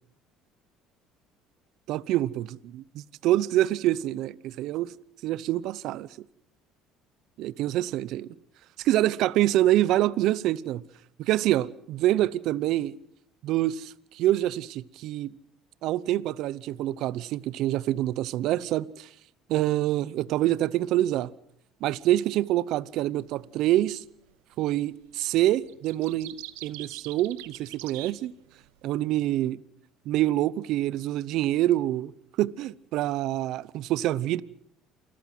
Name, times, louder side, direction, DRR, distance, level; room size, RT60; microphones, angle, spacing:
voice 1, 1.9-4.9 5.2-6.1 7.4-8.3 8.8-10.8 11.2-12.9 13.4-15.3 15.8-19.1 19.5-21.3 21.8-24.0 24.6-26.3 26.6-28.3 28.8-29.6 30.1-32.1 32.4-34.4, right 14 dB, 70° right, 0.7 m, -26 dB
sound 1, 23.2-23.5 24.6-25.0 25.3-28.9, right 18 dB, 90° right, 1.0 m, -43 dB
28.5 x 14.0 x 7.7 m
supercardioid pair, 90°, 0 cm